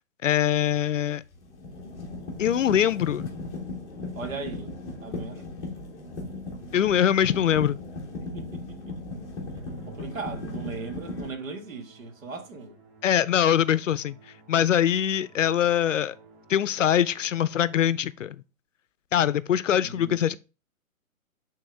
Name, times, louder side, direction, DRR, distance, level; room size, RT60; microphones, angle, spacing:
voice 1, 0.2-1.2 2.4-3.3 6.7-7.8 13.0-14.1 14.5-16.1 16.5-18.4 19.1-20.4, left 10 dB, 65° left, 0.5 m, -23 dB
sound 1, 0.7-0.9 1.3-11.3, left 2 dB, 10° left, 0.7 m, -37 dB
voice 2, 4.1-5.5 8.3-8.9 9.9-12.8 19.8-20.4, right 4 dB, 70° right, 1.8 m, -38 dB
Musical instrument, 9.7-18.2, right 4 dB, 45° right, 2.8 m, -55 dB
8.5 x 3.5 x 3.4 m
hypercardioid pair, 155°, 42 cm